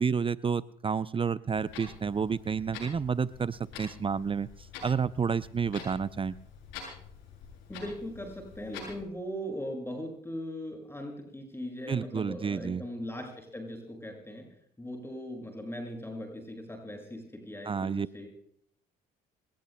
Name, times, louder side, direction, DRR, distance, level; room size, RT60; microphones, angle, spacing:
voice 1, 0.0-4.5 4.8-6.3 11.9-12.8 17.6-18.1, right 6 dB, 25° right, 15 dB, 0.5 m, -30 dB
Clock, 1.5-9.0, left 5 dB, 75° left, 7.7 m, -47 dB
voice 2, 7.7-14.5 14.8-18.3, equal, 10° left, 1 dB, 6.4 m, -39 dB
27.5 x 19.0 x 2.2 m, 0.64 s
hypercardioid pair, 60°, 21 cm